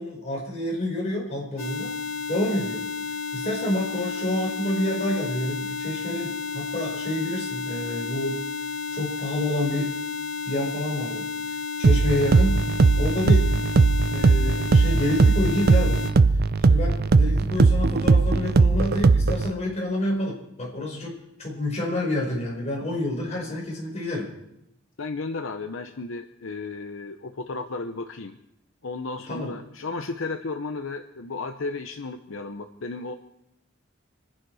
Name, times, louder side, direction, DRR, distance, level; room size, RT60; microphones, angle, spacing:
voice 1, 0.0-2.0 2.3-2.8 3.3-8.4 8.9-9.9 10.5-11.2 11.8-12.6 13.0-13.5 14.1-16.0 16.6-21.1 21.4-24.3 29.3-29.5, left 1 dB, 30° left, -2 dB, 5.4 m, -28 dB
sound 1, 1.6-16.1, left 5 dB, 85° left, 1.5 m, -32 dB
sound 2, 11.8-19.5, right 3 dB, 50° right, 0.5 m, -19 dB
voice 2, 25.0-28.4 28.8-33.1, left 3 dB, 70° left, 7 dB, 0.8 m, -34 dB
27.0 x 10.5 x 4.8 m, 0.83 s
head